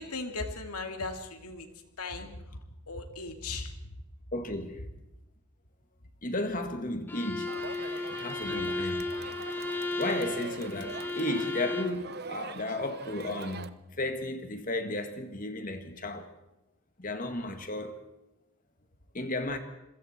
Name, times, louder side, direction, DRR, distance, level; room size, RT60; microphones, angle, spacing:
voice 1, 0.0-1.7 2.0-2.3 2.9-3.7 8.5-8.9 9.9-10.0, left 3 dB, 85° left, 2.6 m, -38 dB
voice 2, 4.3-4.8 6.2-7.6 8.1-9.1 9.9-16.3 17.0-17.9 19.1-19.6, left 2 dB, 35° left, 2.0 m, -34 dB
Bowed string instrument, 7.1-12.0, left 2 dB, 10° left, 1.6 m, -34 dB
Crowd, 7.5-13.7, right 4 dB, 45° right, 0.9 m, -42 dB
27.0 x 22.5 x 4.4 m
head